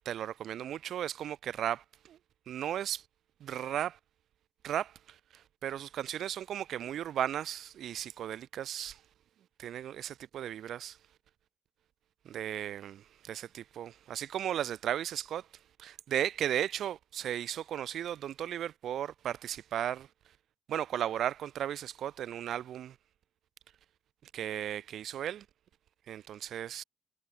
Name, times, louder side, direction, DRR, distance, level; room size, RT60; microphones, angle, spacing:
voice 1, 0.1-2.2 2.5-3.0 3.4-4.0 4.6-9.0 9.6-11.0 12.3-15.5 15.8-20.1 20.7-23.0 24.2-25.5 26.1-26.8, right 10 dB, 70° right, 1.7 m, -35 dB
cardioid pair, 90°, 0 cm